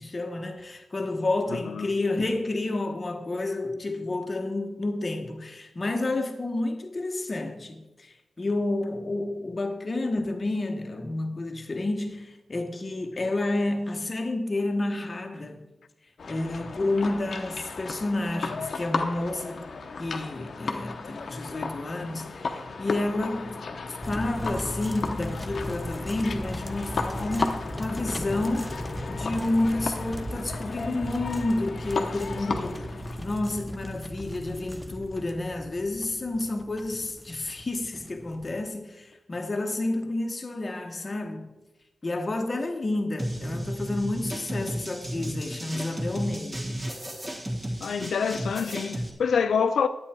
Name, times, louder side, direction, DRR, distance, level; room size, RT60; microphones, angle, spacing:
voice 1, 0.0-15.6 16.3-19.6 20.0-41.5 42.0-46.6, left 2 dB, 25° left, 1.0 m, -30 dB
voice 2, 1.5-1.9 47.8-49.9, left 6 dB, 80° left, 0.3 m, -26 dB
sound 1, 16.2-33.4, left 4 dB, 50° left, 0.9 m, -35 dB
sound 2, 24.0-38.6, equal, ahead, 0.6 m, -37 dB
sound 3, 43.2-49.1, equal, 25° right, 1.5 m, -33 dB
10.5 x 8.8 x 4.4 m
wide cardioid pair, 180°, 0 cm